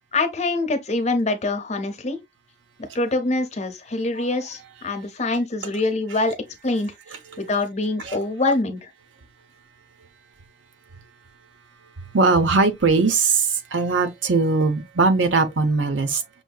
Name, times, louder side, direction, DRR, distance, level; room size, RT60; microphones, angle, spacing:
voice 1, 0.1-2.2 2.9-6.4 6.6-6.9 7.4-8.8, left 2 dB, 35° left, 0.8 m, -24 dB
voice 2, 12.1-16.2, right 4 dB, 80° right, 0.8 m, -20 dB
6.1 x 2.7 x 2.3 m
head